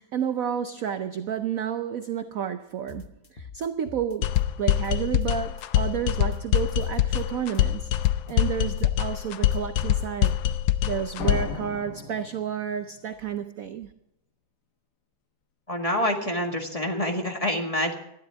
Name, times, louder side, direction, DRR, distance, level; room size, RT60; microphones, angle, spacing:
voice 1, 0.0-7.9 8.3-10.4 10.8-13.9, right 8 dB, 65° right, 0.8 m, -31 dB
sound 1, 2.9-5.3 5.6-7.2 7.5-10.8, left 4 dB, 35° left, 0.9 m, -45 dB
sound 2, 4.2-11.6, left 12 dB, 75° left, 1.5 m, -24 dB
sound 3, 11.2-13.0, left 5 dB, 55° left, 1.7 m, -37 dB
voice 2, 15.7-17.9, left 1 dB, 20° left, 1.8 m, -27 dB
20.0 x 13.0 x 3.6 m
omnidirectional pair, 2.2 m